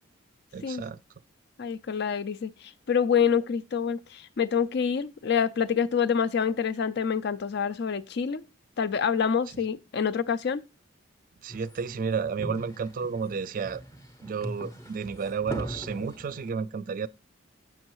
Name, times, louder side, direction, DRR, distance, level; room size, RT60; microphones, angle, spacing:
voice 1, 0.5-1.0 11.4-13.8 14.2-17.1, right 6 dB, 45° right, 0.3 m, -32 dB
voice 2, 1.6-8.4 8.8-10.6, left 7 dB, 55° left, 0.4 m, -27 dB
sound 1, 11.5-16.5, equal, 15° left, 0.7 m, -40 dB
7.6 x 6.4 x 3.0 m
head